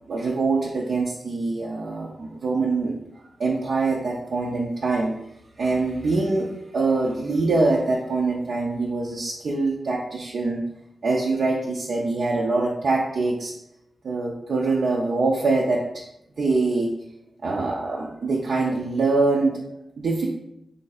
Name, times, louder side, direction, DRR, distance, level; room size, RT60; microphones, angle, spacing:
voice 1, 0.1-2.9 3.4-5.1 5.6-10.6 11.0-13.5 14.0-16.0 16.4-16.9 17.4-19.6 20.0-20.3, right 3 dB, 75° right, -3 dB, 0.5 m, -24 dB
3.3 x 2.6 x 4.0 m, 0.82 s
cardioid pair, 70°, 0 cm